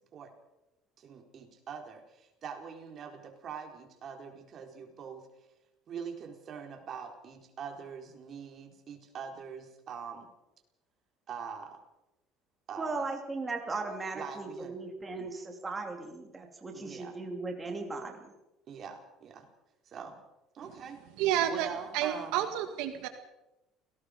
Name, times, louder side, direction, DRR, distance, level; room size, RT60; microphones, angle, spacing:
voice 1, 1.0-5.3 5.9-10.3 11.3-11.8 12.7-13.0 14.1-14.7 15.1-15.3 16.7-17.2 18.7-19.5 19.9-20.2 20.5-21.0 21.5-22.4, right 6 dB, 40° right, 3 dB, 4.1 m, -43 dB
voice 2, 12.8-18.3, right 3 dB, 15° right, 3 dB, 2.8 m, -37 dB
voice 3, 21.2-23.1, right 11 dB, 80° right, 7 dB, 1.9 m, -30 dB
29.0 x 18.5 x 5.2 m, 0.93 s
cardioid pair, 150°, 0 cm